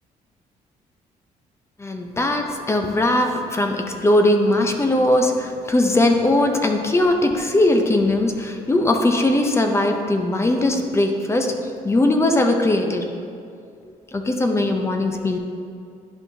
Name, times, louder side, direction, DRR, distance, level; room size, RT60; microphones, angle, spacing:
voice 1, 1.8-11.6 11.8-13.0 14.1-15.4, left 1 dB, 20° left, 4 dB, 0.6 m, -19 dB
11.0 x 5.6 x 2.7 m, 2.4 s
cardioid pair, 110°, 14 cm